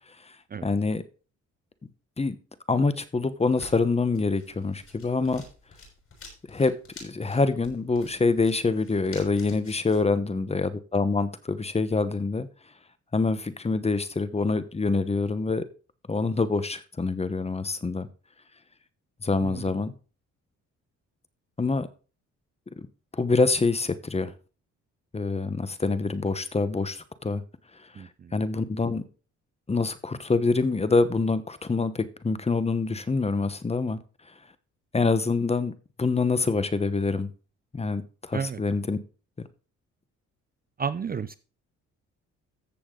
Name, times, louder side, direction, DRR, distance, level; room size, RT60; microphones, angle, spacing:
voice 1, 0.6-1.0 2.2-2.4 2.7-5.4 6.5-6.7 7.0-12.5 13.1-15.6 16.1-18.1 19.2-19.9 21.6-21.9 22.8-22.9 23.1-24.3 25.1-27.4 28.3-29.0 29.7-34.0 34.9-35.7 36.0-37.3 37.7-39.0, left 3 dB, 20° left, 1.0 m, -25 dB
sound 1, 3.4-10.0, left 3 dB, 45° left, 6.1 m, -49 dB
voice 2, 28.0-28.3 38.3-38.6 40.8-41.4, right 6 dB, 30° right, 0.6 m, -32 dB
14.0 x 6.9 x 3.8 m
cardioid pair, 90°, 30 cm